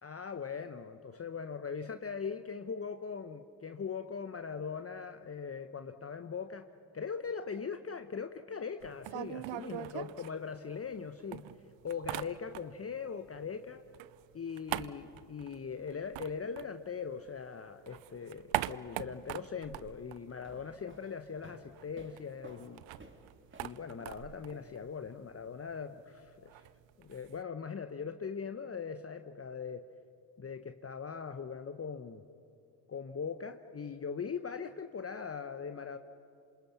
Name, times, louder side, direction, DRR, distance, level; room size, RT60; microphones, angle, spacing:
voice 1, 0.0-6.7 6.9-11.4 11.8-13.8 14.3-22.8 23.6-26.7 27.0-29.9 30.4-32.2 32.9-36.0, left 6 dB, 30° left, 9 dB, 1.0 m, -40 dB
sound 1, 8.8-11.0 11.3-12.9 13.2-17.4 17.7-21.0 21.3-21.4 21.6-27.4, right 16 dB, 65° right, 0.8 m, -42 dB
sound 2, 20.3-25.1, right 2 dB, 25° right, 3.0 m, -57 dB
27.5 x 27.0 x 5.9 m, 2.7 s
hypercardioid pair, 45°, 49 cm